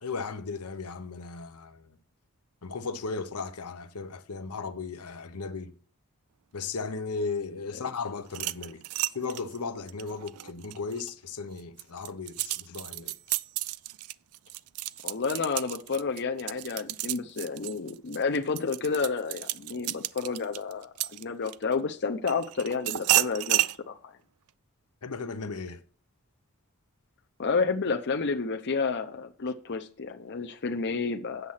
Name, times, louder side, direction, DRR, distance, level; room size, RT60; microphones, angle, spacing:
voice 1, 0.0-2.0 2.6-5.7 6.5-8.8 9.1-13.1 25.0-25.8, left 4 dB, 85° left, 0.9 m, -36 dB
sound 1, 8.3-11.1 11.6-21.7 22.3-23.8, right 16 dB, 75° right, 0.4 m, -31 dB
voice 2, 15.0-24.1 27.4-31.5, left 4 dB, 50° left, 0.7 m, -30 dB
8.2 x 7.3 x 5.7 m
head